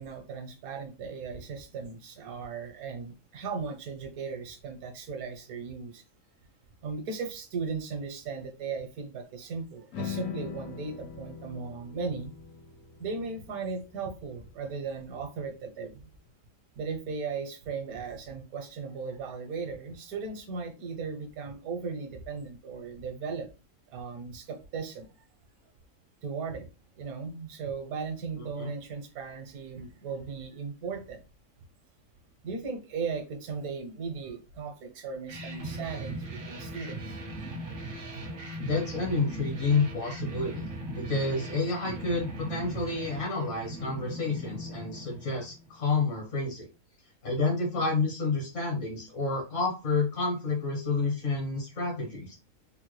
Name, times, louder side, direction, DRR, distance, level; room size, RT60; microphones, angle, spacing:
voice 1, 0.0-6.0 6.8-12.3 13.0-16.0 16.8-23.5 23.9-25.1 26.2-26.7 27.0-31.2 32.4-37.2 38.1-38.3, right 5 dB, 80° right, 6 dB, 1.1 m, -37 dB
sound 1, 9.9-16.2, left 7 dB, 80° left, 1.1 m, -43 dB
voice 2, 28.3-28.7 38.6-46.7 47.2-52.4, left 3 dB, 60° left, -1 dB, 1.3 m, -29 dB
sound 2, 35.3-45.8, right 1 dB, 55° right, 0.6 m, -39 dB
3.7 x 2.1 x 3.0 m, 0.30 s
omnidirectional pair, 1.5 m